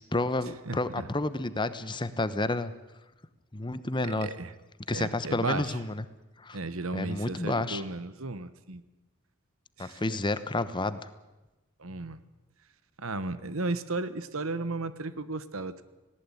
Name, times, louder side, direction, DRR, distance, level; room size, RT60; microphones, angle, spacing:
voice 1, 0.0-2.7 3.5-4.3 4.9-6.0 6.4-6.6 6.9-7.8 9.8-11.0, left 2 dB, 20° left, 13 dB, 1.0 m, -30 dB
voice 2, 0.7-1.1 4.1-4.5 4.9-5.8 6.5-8.8 9.8-10.2 11.8-12.2 13.0-15.8, right 3 dB, 75° right, 14 dB, 1.3 m, -35 dB
19.0 x 18.0 x 9.9 m, 1.1 s
head